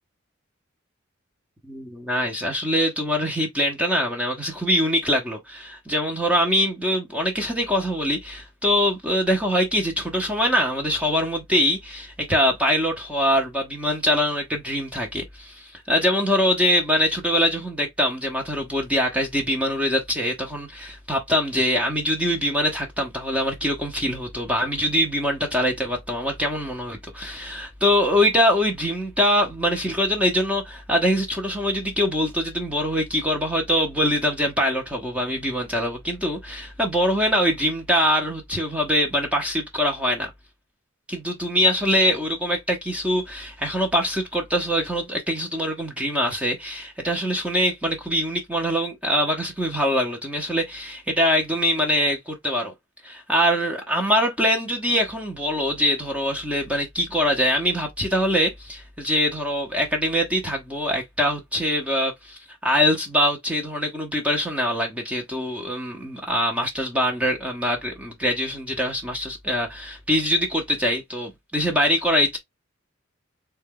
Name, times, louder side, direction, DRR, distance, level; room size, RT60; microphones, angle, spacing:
voice 1, 1.7-40.3 41.1-52.7 53.0-72.4, equal, 5° right, 0.7 m, -23 dB
3.7 x 2.3 x 3.6 m
head